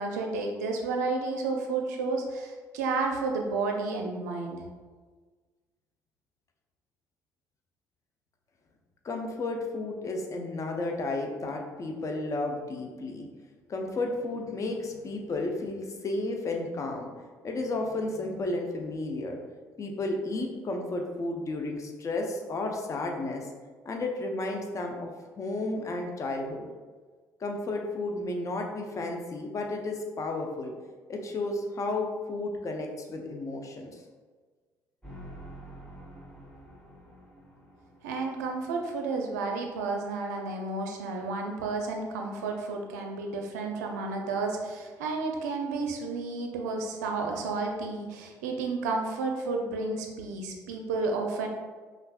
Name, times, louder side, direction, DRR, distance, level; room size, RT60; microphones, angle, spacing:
voice 1, 0.0-4.6 38.0-51.5, right 3 dB, 70° right, 3 dB, 0.4 m, -31 dB
voice 2, 9.0-13.3 13.7-17.1 17.4-19.4 19.8-23.5 23.8-25.1 25.4-26.7 27.4-30.7 31.1-34.0, left 2 dB, 35° left, 2 dB, 0.6 m, -32 dB
sound 1, 35.0-39.1, right 1 dB, 10° left, 1.2 m, -48 dB
5.3 x 2.4 x 2.3 m, 1.4 s
figure-of-eight pair, 50°, 9 cm